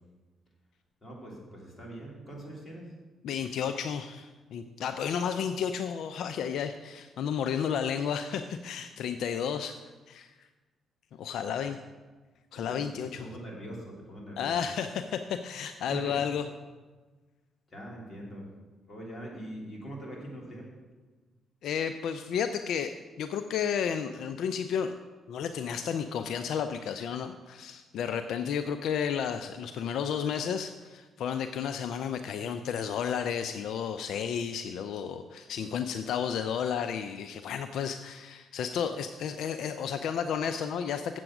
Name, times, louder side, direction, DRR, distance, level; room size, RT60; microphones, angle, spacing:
voice 1, 1.0-2.9 11.4-11.5 12.5-12.9 13.2-14.5 15.9-16.2 17.7-18.5 18.9-20.7, right 1 dB, 30° left, -3 dB, 3.2 m, -42 dB
voice 2, 3.2-9.8 10.1-10.3 11.2-11.8 12.5-13.3 14.4-16.4 21.6-24.9 25.3-41.2, left 7 dB, 75° left, 9 dB, 0.4 m, -32 dB
7.9 x 7.6 x 6.0 m, 1.3 s
cardioid pair, 90°, 0 cm